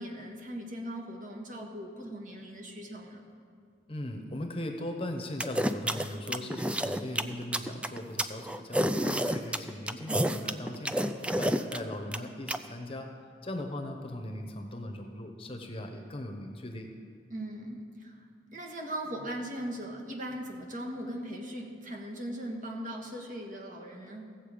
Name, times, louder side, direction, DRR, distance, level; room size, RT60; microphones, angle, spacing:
voice 1, 0.0-3.2 10.1-10.5 17.3-24.4, right 1 dB, 45° right, 0 dB, 1.5 m, -39 dB
voice 2, 3.9-13.1 13.4-16.9, left 1 dB, 30° left, 4 dB, 0.9 m, -39 dB
sound 1, 5.4-12.6, right 1 dB, 5° right, 0.3 m, -29 dB
15.5 x 7.7 x 5.0 m, 2.3 s
head